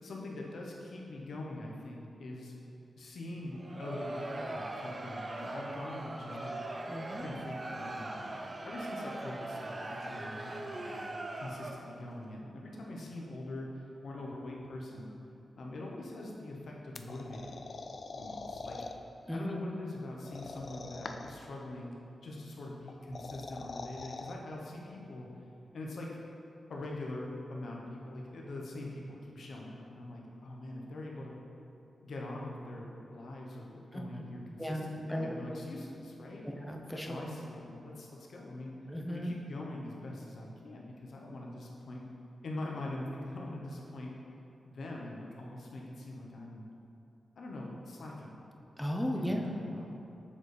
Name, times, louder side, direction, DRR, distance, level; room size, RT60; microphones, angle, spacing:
voice 1, 0.0-2.5 3.0-6.5 7.2-11.0 11.4-15.1 15.6-17.7 18.1-18.8 19.3-22.0 22.2-25.5 25.7-26.1 26.7-31.4 32.0-36.5 36.9-38.7 39.1-42.0 42.4-44.1 44.6-46.7 47.4-48.4 49.1-50.0, left 1 dB, 75° left, -2 dB, 0.9 m, -43 dB
Crowd, 3.5-12.0, right 2 dB, 40° right, 0.5 m, -40 dB
voice 2, 6.9-7.2 19.3-19.6 33.9-34.2 34.6-35.4 36.4-37.2 38.9-39.4 48.8-49.5, equal, 5° left, 1 dB, 0.7 m, -36 dB
sound 1, 17.0-19.0 20.3-21.4 22.9-24.3, left 3 dB, 55° left, 0.3 m, -43 dB
7.1 x 4.0 x 3.3 m, 2.8 s
cardioid pair, 60°, 0 cm